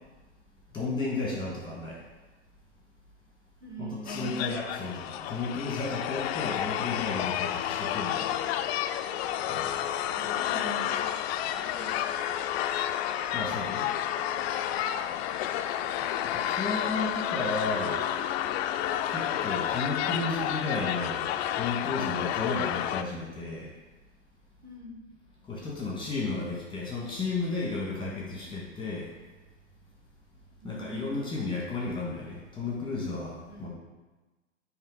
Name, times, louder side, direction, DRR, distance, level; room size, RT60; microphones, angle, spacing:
voice 1, 0.7-2.0 3.8-8.4 9.5-9.8 13.3-13.9 16.3-18.0 19.1-21.2 21.5-23.7 25.5-29.1 30.6-33.7, left 3 dB, 10° left, -4 dB, 1.8 m, -33 dB
voice 2, 3.6-4.5 6.3-6.6 10.0-10.9 11.5-12.0 16.0-16.2 24.6-25.0 30.6-31.2 33.5-33.7, right 3 dB, 10° right, -4 dB, 1.6 m, -43 dB
sound 1, 4.1-23.0, left 11 dB, 55° left, 0.5 m, -30 dB
8.7 x 3.4 x 4.0 m, 1.2 s
hypercardioid pair, 120°, 38 cm